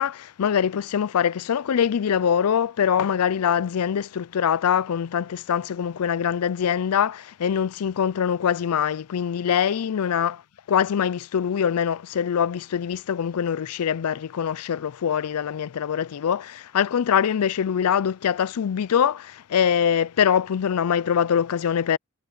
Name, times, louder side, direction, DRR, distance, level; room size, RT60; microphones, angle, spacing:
voice 1, 0.0-10.4 10.7-22.0, left 8 dB, 75° left, 0.4 m, -23 dB
head